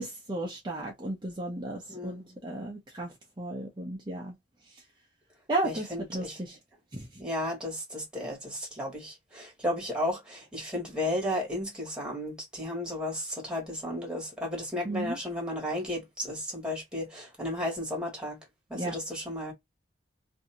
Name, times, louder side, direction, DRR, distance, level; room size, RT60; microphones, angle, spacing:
voice 1, 0.0-4.3 5.5-6.6 6.9-7.1 14.8-15.2 18.7-19.0, right 2 dB, 25° right, 0.6 m, -34 dB
voice 2, 5.6-6.4 7.2-18.4 18.7-19.5, left 1 dB, 5° right, 1.5 m, -34 dB
2.7 x 2.6 x 2.8 m
head